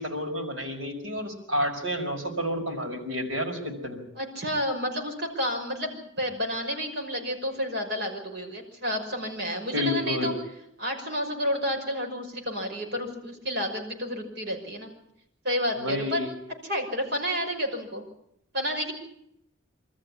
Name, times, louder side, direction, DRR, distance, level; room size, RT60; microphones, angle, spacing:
voice 1, 0.0-4.0 9.7-10.4 15.7-16.3, left 1 dB, 75° right, 2 dB, 5.5 m, -30 dB
voice 2, 4.2-10.3 10.8-14.9 15.4-16.2 16.6-18.0 18.5-18.9, equal, 55° right, 1 dB, 5.9 m, -30 dB
25.0 x 14.0 x 9.9 m, 0.78 s
head